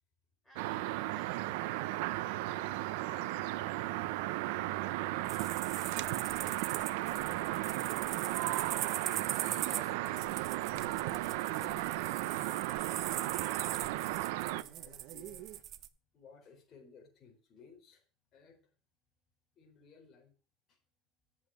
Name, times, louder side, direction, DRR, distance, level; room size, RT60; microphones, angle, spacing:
voice 1, 0.4-1.6, right 1 dB, 5° left, -3 dB, 5.0 m, -58 dB
sound 1, 0.6-14.6, right 17 dB, 85° right, 0.7 m, -35 dB
voice 2, 2.3-3.5 11.1-13.8 14.3-15.6 16.1-18.0 18.3-18.7 19.6-20.3, left 6 dB, 35° left, -1 dB, 4.3 m, -59 dB
sound 2, 5.2-15.9, right 11 dB, 45° right, 0.8 m, -41 dB
sound 3, 7.4-15.6, right 14 dB, 65° right, 1.0 m, -51 dB
8.6 x 7.3 x 7.1 m, 0.36 s
cardioid pair, 150°, 0 cm